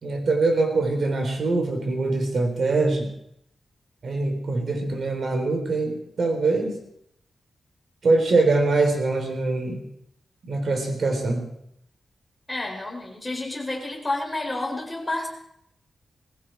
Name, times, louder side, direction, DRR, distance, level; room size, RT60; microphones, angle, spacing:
voice 1, 0.0-3.1 4.0-6.8 8.0-9.8 10.5-11.4, right 3 dB, 60° right, 4 dB, 3.7 m, -23 dB
voice 2, 12.5-15.3, left 2 dB, 10° left, -1 dB, 4.2 m, -30 dB
19.0 x 15.5 x 4.6 m, 0.74 s
wide cardioid pair, 130°, 0 cm